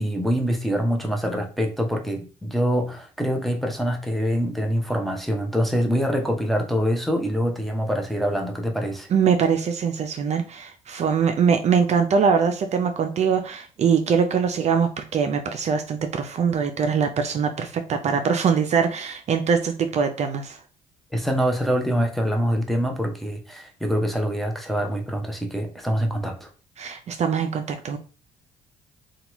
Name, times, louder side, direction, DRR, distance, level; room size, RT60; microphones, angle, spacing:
voice 1, 0.0-9.1 21.1-26.5, equal, ahead, 0.7 m, -25 dB
voice 2, 9.1-20.6 26.8-28.0, right 6 dB, 45° right, 0.4 m, -22 dB
2.9 x 2.3 x 2.9 m
supercardioid pair, 75°, 15 cm